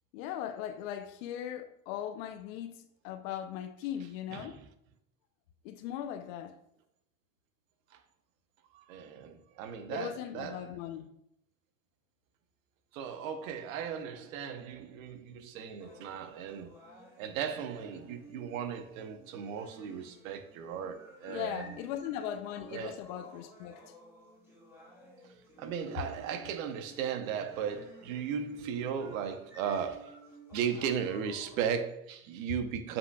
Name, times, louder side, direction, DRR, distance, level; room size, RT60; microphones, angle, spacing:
voice 1, 0.1-4.6 5.6-6.5 9.9-11.1 21.3-23.8, left 10 dB, 70° left, 0.7 m, -39 dB
voice 2, 8.7-10.7 12.9-16.8 17.2-21.8 22.7-23.0 25.6-30.2 30.5-33.0, right 8 dB, 80° right, 1.0 m, -36 dB
sound 1, 15.8-31.8, right 1 dB, 5° right, 2.5 m, -54 dB
7.6 x 5.7 x 2.3 m
supercardioid pair, 110°, 40 cm